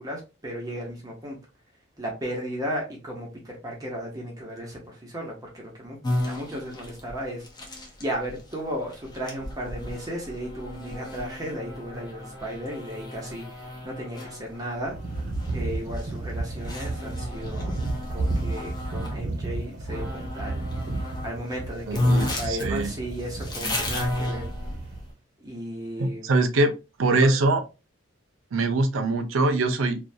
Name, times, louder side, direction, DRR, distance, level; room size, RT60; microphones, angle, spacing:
voice 1, 0.0-1.4 2.0-6.0 6.3-7.4 7.7-14.9 15.5-17.7 18.1-20.6 21.2-24.4 25.4-26.3 27.2-27.3, equal, 20° right, 0.7 m, -35 dB
sound 1, 6.0-19.2 19.9-21.3 21.6-21.7 21.9-25.0, left 1 dB, 20° left, 0.6 m, -33 dB
sound 2, 14.9-25.1, right 2 dB, 50° right, 0.8 m, -32 dB
voice 2, 21.9-22.9 26.0-26.7 27.0-27.6 28.5-30.0, right 2 dB, 80° right, 0.5 m, -23 dB
2.5 x 2.2 x 2.5 m
head